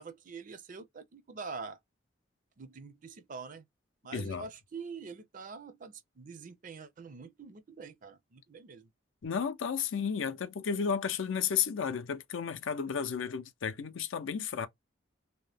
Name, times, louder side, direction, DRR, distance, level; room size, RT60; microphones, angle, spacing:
voice 1, 0.0-1.8 2.6-3.7 4.0-8.9, right 5 dB, 45° right, 0.5 m, -45 dB
voice 2, 4.1-4.5 9.2-14.7, left 7 dB, 80° left, 0.5 m, -33 dB
2.8 x 2.1 x 3.2 m
head